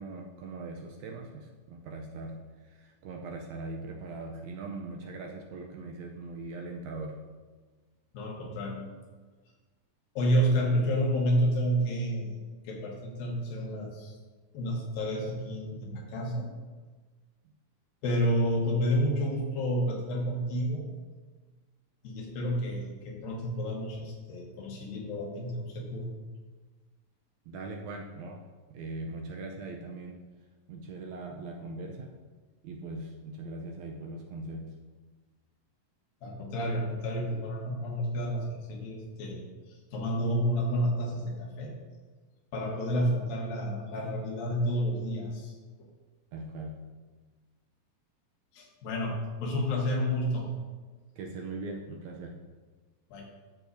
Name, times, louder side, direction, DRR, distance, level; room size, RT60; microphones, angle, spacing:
voice 1, 0.0-7.3 27.5-28.4 28.7-30.2 30.7-32.1 32.6-34.8 46.3-46.9 51.2-52.4, right 2 dB, 80° right, 1 dB, 1.7 m, -40 dB
voice 2, 8.1-8.9 10.2-12.3 12.6-14.1 14.5-16.5 18.0-20.9 22.0-26.1 36.2-41.7 42.5-45.5 45.8-45.9 48.5-50.5 53.1-53.3, equal, 80° left, -1 dB, 3.0 m, -30 dB
13.5 x 6.2 x 2.7 m, 1.4 s
omnidirectional pair, 4.0 m